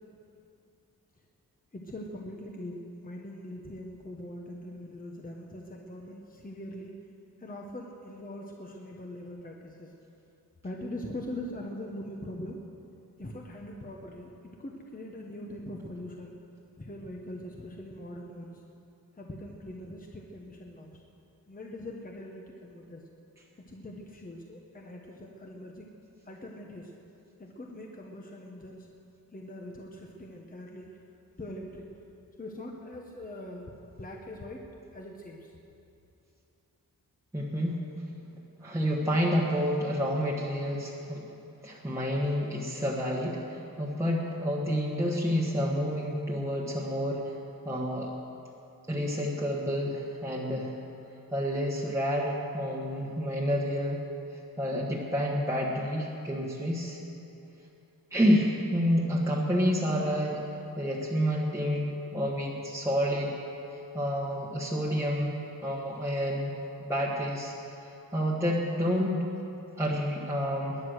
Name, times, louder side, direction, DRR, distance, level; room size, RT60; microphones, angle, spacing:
voice 1, 1.7-6.9 7.4-9.9 10.6-12.6 13.2-16.3 16.8-18.6 19.2-21.0 21.5-23.0 23.6-25.9 26.2-26.9 27.4-28.9 29.3-31.0 31.4-31.9 32.4-33.7 34.0-35.5, left 1 dB, 25° left, 0 dB, 1.1 m, -42 dB
voice 2, 37.3-37.8 38.6-41.3 41.6-47.3 47.6-48.1 48.9-50.7 51.3-54.0 54.6-57.0 58.1-60.4 60.8-63.4 63.7-65.4 65.6-66.5 66.8-67.5 67.8-69.3 69.8-70.8, equal, 10° right, -4 dB, 1.4 m, -29 dB
21.0 x 9.5 x 6.4 m, 2.8 s
wide cardioid pair, 150°, 37 cm